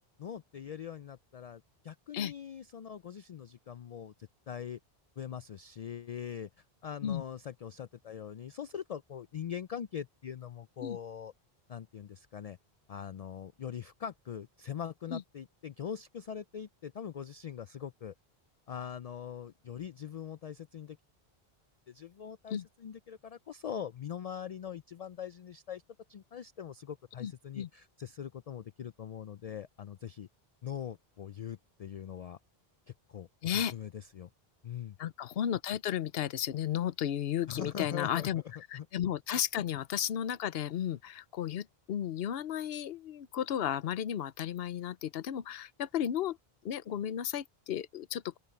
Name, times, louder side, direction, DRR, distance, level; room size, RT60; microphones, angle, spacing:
voice 1, 0.0-4.8 5.2-6.5 6.8-11.3 11.7-12.6 12.9-18.1 18.7-21.0 21.9-25.8 26.1-30.3 30.6-32.4 33.1-34.3 34.6-35.0 37.5-38.3 38.7-38.9, left 8 dB, 55° left, 0.4 m, -42 dB
voice 2, 27.2-27.7 33.4-33.7 35.0-38.4 38.7-46.4 46.6-48.4, left 10 dB, 75° left, 0.9 m, -34 dB
open air
omnidirectional pair, 1.0 m